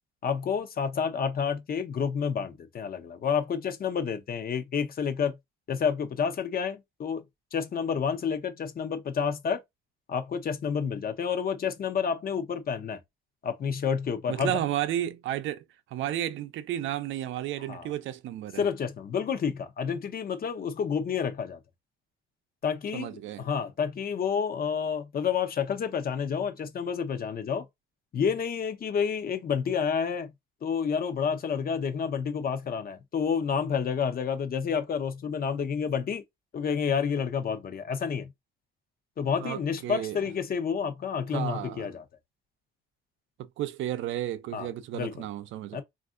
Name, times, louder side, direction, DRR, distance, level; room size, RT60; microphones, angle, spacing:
voice 1, 0.2-5.4 5.7-7.2 7.5-9.6 10.1-13.0 13.4-14.6 17.7-17.9 18.6-21.6 22.6-23.1 23.4-27.7 28.1-30.3 30.6-36.2 36.5-38.3 39.2-42.0 44.5-44.7 44.9-45.3 45.7-45.8, left 6 dB, 50° left, 0.7 m, -29 dB
voice 2, 14.3-15.6 15.9-18.6 22.9-23.4 39.4-40.2 41.3-41.9 43.6-45.8, right 12 dB, 80° right, 0.5 m, -32 dB
3.4 x 2.5 x 2.4 m
cardioid pair, 90°, 20 cm